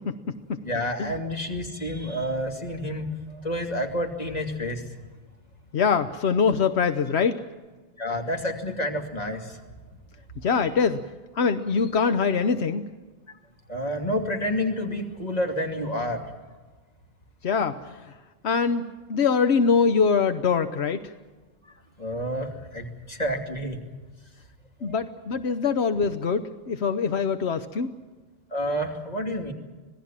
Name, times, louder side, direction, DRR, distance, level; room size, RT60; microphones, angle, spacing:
voice 1, 0.0-0.6 1.0-1.1 5.7-7.4 10.4-11.0 11.4-12.9 17.4-18.0 18.4-21.0 24.8-27.9, left 5 dB, 80° left, 10 dB, 1.2 m, -23 dB
voice 2, 0.6-4.8 8.0-9.6 13.7-16.3 22.0-23.8 24.8-25.0 28.5-29.5, equal, 40° left, 3 dB, 2.8 m, -29 dB
26.0 x 18.5 x 7.4 m, 1.3 s
omnidirectional pair, 1.1 m